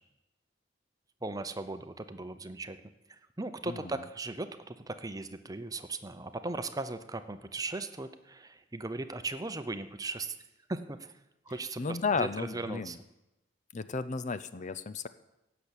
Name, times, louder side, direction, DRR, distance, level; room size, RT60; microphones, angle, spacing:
voice 1, 1.2-2.8 3.1-10.4 10.7-11.1 11.5-13.0, right 2 dB, 20° right, 10 dB, 0.7 m, -38 dB
voice 2, 11.8-12.9 13.7-15.1, left 4 dB, 40° left, 13 dB, 0.6 m, -33 dB
16.5 x 7.0 x 8.2 m, 0.94 s
head